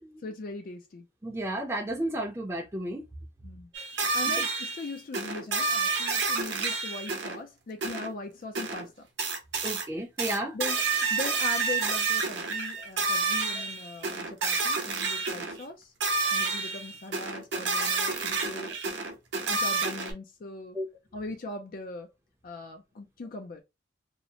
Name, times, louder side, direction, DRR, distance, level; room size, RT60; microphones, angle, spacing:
voice 1, 0.2-1.0 3.4-3.7 4.0-9.0 10.5-15.9 16.3-18.9 19.5-20.8 21.1-22.1 22.4-23.6, left 3 dB, 45° left, 0.4 m, -40 dB
voice 2, 1.2-3.0 3.7-3.8 4.3-4.4 9.6-10.6 13.6-13.7 20.7-20.9, right 1 dB, 15° right, 0.5 m, -33 dB
sound 1, 3.7-7.4 7.8-8.1 8.6-8.9 9.2-9.9 10.2-15.6 16.0-20.1, right 4 dB, 65° right, 0.7 m, -29 dB
2.7 x 2.0 x 2.7 m
head